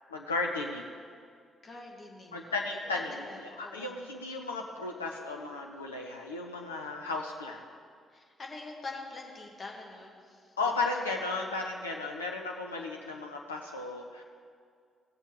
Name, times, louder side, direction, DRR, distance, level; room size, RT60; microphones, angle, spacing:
voice 1, 0.1-0.9 2.3-7.6 10.6-14.2, left 3 dB, 80° left, 0 dB, 0.5 m, -35 dB
voice 2, 1.6-2.6 2.9-3.9 8.1-10.5 11.2-11.3, left 3 dB, 35° left, 0 dB, 1.7 m, -45 dB
16.5 x 7.1 x 3.6 m, 2.2 s
figure-of-eight pair, 40°, 0 cm